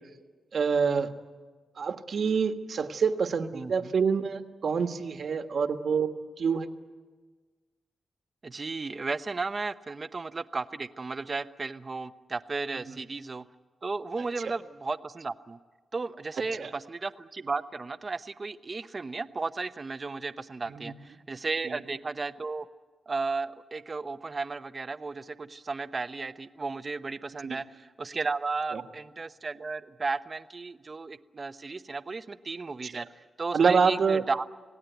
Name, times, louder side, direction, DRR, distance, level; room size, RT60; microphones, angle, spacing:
voice 1, 0.5-1.1 1.8-6.1 6.4-6.7 12.9-13.0 16.6-16.7 20.7-20.8 21.6-21.8 27.4-27.6 32.8-33.0 33.5-34.2, right 5 dB, 60° right, 7 dB, 1.5 m, -26 dB
voice 2, 3.5-3.9 8.4-13.4 13.8-15.6 15.9-22.7 23.1-34.5, right 4 dB, 35° right, 11 dB, 0.9 m, -34 dB
27.0 x 18.0 x 9.3 m, 1.4 s
wide cardioid pair, 115°, 0 cm